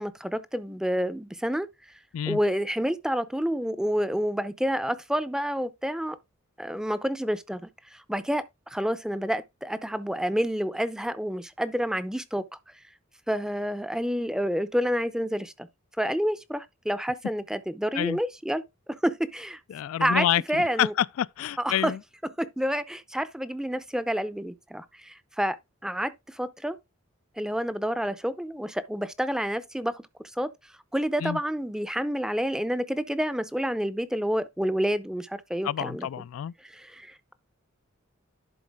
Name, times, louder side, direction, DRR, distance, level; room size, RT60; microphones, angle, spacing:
voice 1, 0.0-1.7 2.3-6.2 6.6-8.4 8.7-12.4 13.3-15.7 16.0-19.6 20.0-20.9 21.6-21.9 22.4-25.6 25.8-26.8 27.4-30.0 30.4-30.5 30.9-36.1 36.6-37.3, equal, 5° right, 0.5 m, -29 dB
voice 2, 19.7-22.0 31.2-31.4 35.6-36.5, left 10 dB, 80° left, 0.3 m, -28 dB
11.0 x 4.2 x 3.5 m
head